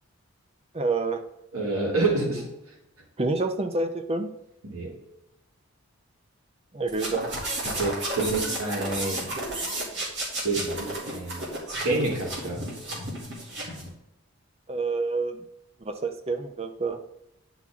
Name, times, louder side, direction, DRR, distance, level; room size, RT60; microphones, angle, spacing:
voice 1, 0.7-1.2 3.2-4.3 6.7-7.3 14.7-15.4 15.8-17.0, right 3 dB, 25° right, 7 dB, 0.6 m, -28 dB
voice 2, 1.5-2.4 4.6-4.9 7.6-9.3 10.4-11.4 11.8-12.6, right 3 dB, 75° right, -2 dB, 2.5 m, -28 dB
sound 1, 6.9-13.9, right 1 dB, 50° right, 2.7 m, -32 dB
9.6 x 6.0 x 3.6 m, 0.86 s
head